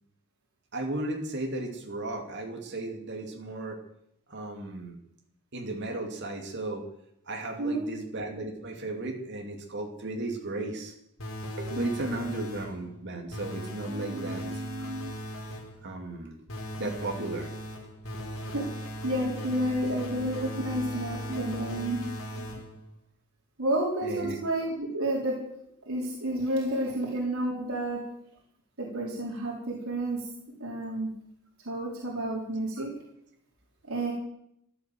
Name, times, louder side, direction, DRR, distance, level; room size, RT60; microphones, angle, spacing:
voice 1, 0.7-3.8 4.3-5.0 5.5-6.8 7.3-10.9 11.6-15.1 15.8-16.4 16.8-17.5 19.7-20.5 21.3-21.4 24.0-24.4, right 2 dB, 55° right, 1 dB, 2.6 m, -35 dB
voice 2, 7.6-8.0 13.9-14.5 18.4-22.0 23.6-25.4 25.9-28.0 28.8-30.3 30.6-31.1 31.7-32.9 33.9-34.1, right 1 dB, 80° right, -3 dB, 4.1 m, -30 dB
sound 1, 11.2-12.9 13.3-15.8 16.5-22.9, equal, 70° left, 3.5 m, -38 dB
15.5 x 12.0 x 7.8 m, 0.74 s
head